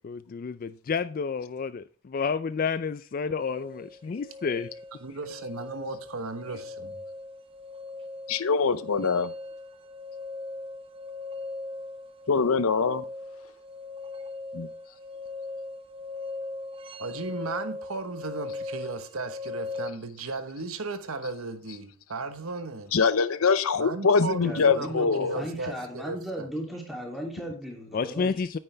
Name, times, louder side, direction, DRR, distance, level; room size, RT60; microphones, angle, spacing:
voice 1, 0.0-4.7 27.9-28.6, left 5 dB, 40° left, 0.3 m, -30 dB
sound 1, 3.4-19.9, left 3 dB, 25° right, 0.7 m, -39 dB
voice 2, 5.0-7.0 17.0-22.9 23.7-26.5, right 3 dB, 75° right, 1.2 m, -36 dB
voice 3, 8.3-9.3 12.3-13.0 14.5-14.7 22.9-25.4, left 5 dB, 75° left, 0.7 m, -23 dB
voice 4, 24.4-28.3, equal, ahead, 3.0 m, -36 dB
9.6 x 9.2 x 3.4 m
head